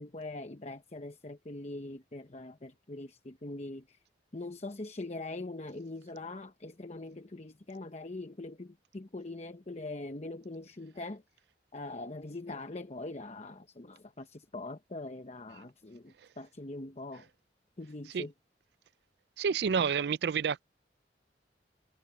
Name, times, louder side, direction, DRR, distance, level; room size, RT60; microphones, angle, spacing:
voice 1, 0.0-4.0 4.3-11.2 11.7-17.3 17.8-18.3, left 2 dB, 35° left, 0.9 m, -42 dB
voice 2, 19.4-20.6, right 6 dB, 65° right, 0.4 m, -29 dB
head